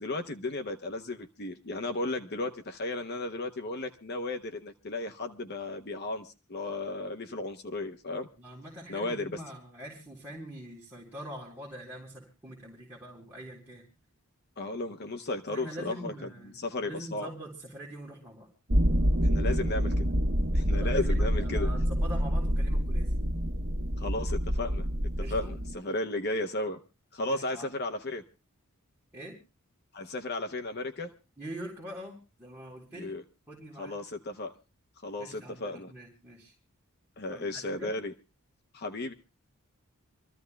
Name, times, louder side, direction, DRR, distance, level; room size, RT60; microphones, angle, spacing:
voice 1, 0.0-8.3 8.9-9.4 14.6-16.1 16.4-17.3 19.2-20.0 20.5-21.7 24.0-24.9 25.3-26.8 27.1-28.2 29.9-31.1 32.9-33.2 33.8-34.6 35.0-35.9 37.2-38.1 38.7-39.1, left 2 dB, 45° left, 6 dB, 0.9 m, -34 dB
voice 2, 8.4-13.9 15.5-18.5 20.7-23.1 25.2-25.6 27.3-27.7 29.1-29.4 31.4-33.2 33.5-34.0 35.2-36.5 37.3-37.9, equal, 10° right, -6 dB, 4.0 m, -44 dB
sound 1, 18.7-25.8, equal, 65° right, 1.5 m, -27 dB
27.0 x 14.5 x 2.3 m, 0.31 s
head